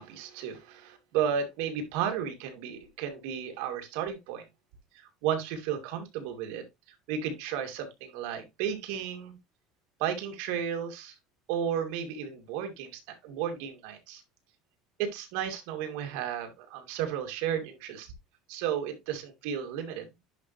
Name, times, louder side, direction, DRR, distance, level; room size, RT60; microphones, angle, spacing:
voice 1, 0.0-4.5 4.9-9.4 10.0-11.2 11.5-14.2 15.0-18.1 18.5-20.1, right 8 dB, 80° right, 2.3 m, -33 dB
10.5 x 4.0 x 3.1 m
cardioid pair, 140°, 0 cm